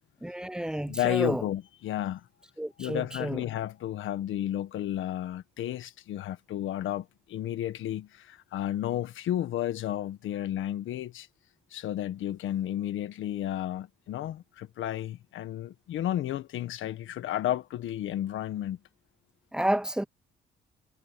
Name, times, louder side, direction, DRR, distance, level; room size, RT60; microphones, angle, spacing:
voice 1, 0.2-1.5 2.6-3.4 19.5-20.0, right 1 dB, 5° right, 0.6 m, -30 dB
voice 2, 0.9-2.2 2.8-11.3 11.7-18.8, left 12 dB, 80° left, 1.5 m, -32 dB
cardioid pair, 90°, 20 cm